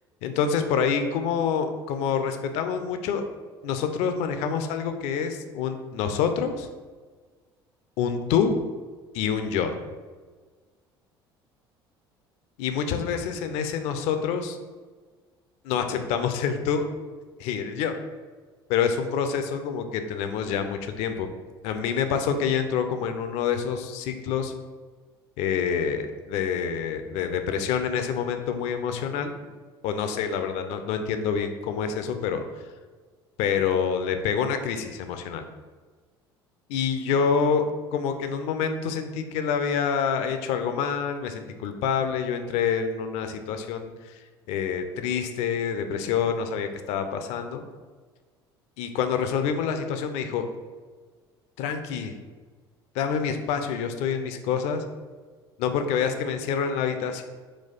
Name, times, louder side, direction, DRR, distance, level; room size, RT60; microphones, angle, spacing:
voice 1, 0.2-3.3 3.6-6.7 8.0-8.5 9.1-9.7 12.6-14.6 15.6-16.9 17.4-18.0 18.7-21.3 21.6-24.5 25.4-29.3 29.8-32.4 33.4-35.4 36.7-47.7 48.8-50.5 51.6-52.1 52.9-54.8 55.6-57.2, left 7 dB, 55° left, 7 dB, 0.4 m, -27 dB
4.1 x 2.3 x 4.0 m, 1.5 s
figure-of-eight pair, 60°, 13 cm